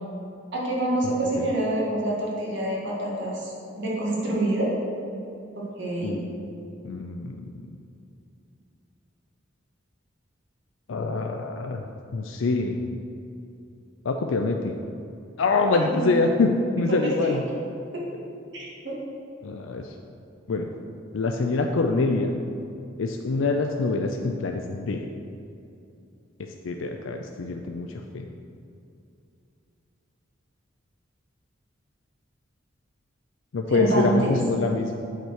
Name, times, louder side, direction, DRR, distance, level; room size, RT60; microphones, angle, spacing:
voice 1, 0.5-4.7 5.5-6.2 15.7-16.1 17.0-17.4 17.9-18.0 18.5-18.9 33.7-34.3, right 1 dB, 65° right, -5 dB, 2.1 m, -27 dB
voice 2, 1.0-1.5 6.0-6.2 6.8-7.4 10.9-11.8 12.1-12.8 14.1-14.7 15.4-17.4 19.4-19.9 20.5-20.7 21.1-22.3 23.0-25.1 26.6-27.9 28.1-28.2 33.5-34.9, left 3 dB, 90° left, 3 dB, 0.5 m, -25 dB
8.1 x 4.5 x 6.3 m, 2.6 s
head